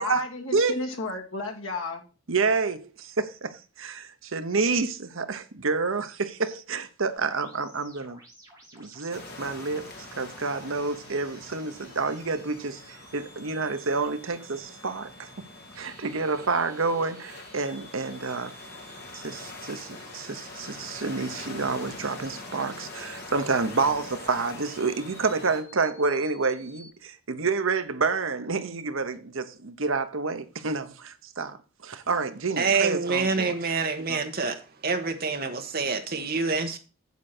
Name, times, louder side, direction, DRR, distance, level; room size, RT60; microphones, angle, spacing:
voice 1, 0.0-2.0, left 2 dB, 65° left, 2.3 m, -32 dB
voice 2, 2.3-8.2 8.7-15.3 15.8-18.5 19.1-33.5 34.1-34.2, right 4 dB, 65° right, 0.9 m, -29 dB
sound 1, 7.2-26.9, right 1 dB, 15° right, 5.4 m, -53 dB
sound 2, 9.1-25.6, left 2 dB, 45° left, 2.4 m, -44 dB
voice 3, 32.6-36.8, right 4 dB, 45° right, 1.3 m, -27 dB
8.3 x 7.9 x 4.3 m
head